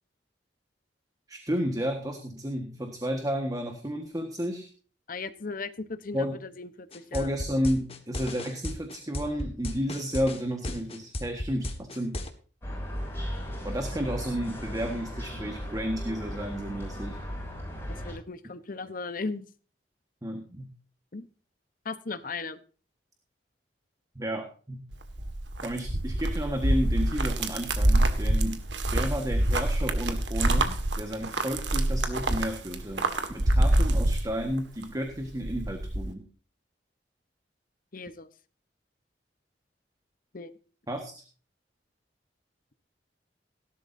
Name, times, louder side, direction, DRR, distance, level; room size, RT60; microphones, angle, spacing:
voice 1, 1.3-4.7 6.1-6.4 7.1-12.2 13.6-17.2 20.2-20.7 24.1-24.8 25.6-28.6 28.9-36.2 40.9-41.1, equal, 20° right, 5 dB, 1.5 m, -32 dB
voice 2, 5.1-7.3 18.0-19.5 21.1-21.3 21.8-22.6 37.9-38.3 40.3-40.5, left 4 dB, 50° left, 12 dB, 1.0 m, -37 dB
sound 1, 6.9-12.3, left 1 dB, 35° left, 1.6 m, -34 dB
sound 2, 12.6-18.1, equal, 15° left, 6.8 m, -36 dB
sound 3, 24.9-34.8 35.2-36.1, right 1 dB, 80° right, 1.8 m, -26 dB
17.5 x 12.0 x 2.7 m, 0.39 s
head